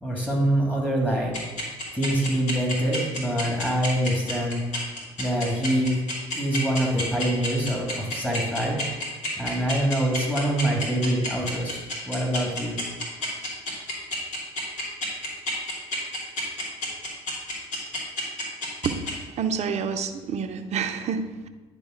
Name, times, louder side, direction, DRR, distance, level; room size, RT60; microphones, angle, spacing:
voice 1, 0.0-1.3 1.9-4.6 5.2-5.9 6.3-9.0 9.4-12.8, right 1 dB, 10° left, -1 dB, 2.5 m, -25 dB
sound 1, 1.3-19.1, left 2 dB, 60° left, 2.7 m, -29 dB
voice 2, 19.3-21.5, right 6 dB, 50° right, 8 dB, 0.8 m, -28 dB
10.0 x 3.6 x 5.1 m, 1.2 s
hypercardioid pair, 65°, 14 cm